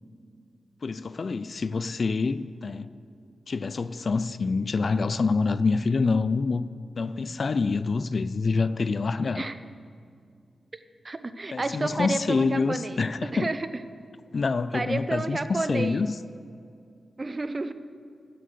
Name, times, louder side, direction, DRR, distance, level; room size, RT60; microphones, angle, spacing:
voice 1, 0.8-2.9 3.5-6.7 7.0-9.4 11.5-13.5 14.3-16.2, left 4 dB, 55° left, 0.4 m, -26 dB
voice 2, 11.0-13.0 13.3-13.6 14.7-16.0 17.2-17.7, right 2 dB, 35° right, 0.7 m, -30 dB
12.5 x 7.6 x 6.8 m
cardioid pair, 60°, 0 cm